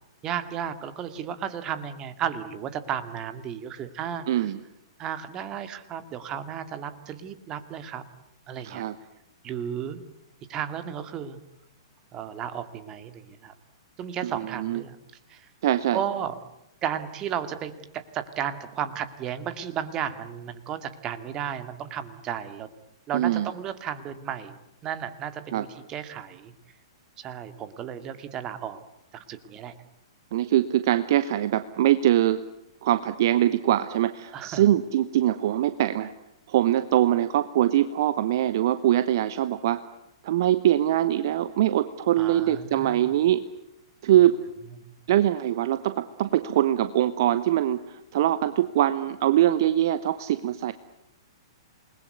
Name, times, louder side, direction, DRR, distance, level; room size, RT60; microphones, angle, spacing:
voice 1, 0.2-4.5 5.0-8.1 8.5-8.8 9.4-10.0 10.5-11.4 12.1-13.5 14.0-15.0 15.3-15.5 15.9-16.4 16.8-22.7 23.1-24.6 24.8-26.5 27.2-28.8 29.1-29.7 34.3-34.7 42.2-43.1, right 9 dB, 25° right, 11 dB, 2.2 m, -34 dB
voice 2, 4.3-4.6 8.6-9.0 14.2-14.8 15.6-16.0 23.1-23.5 25.5-25.7 30.3-32.4 32.8-36.1 36.5-39.8 40.2-43.4 44.0-44.4 45.1-50.7, right 12 dB, 50° right, 13 dB, 1.0 m, -23 dB
28.0 x 21.0 x 9.5 m, 0.84 s
figure-of-eight pair, 110°, 3 cm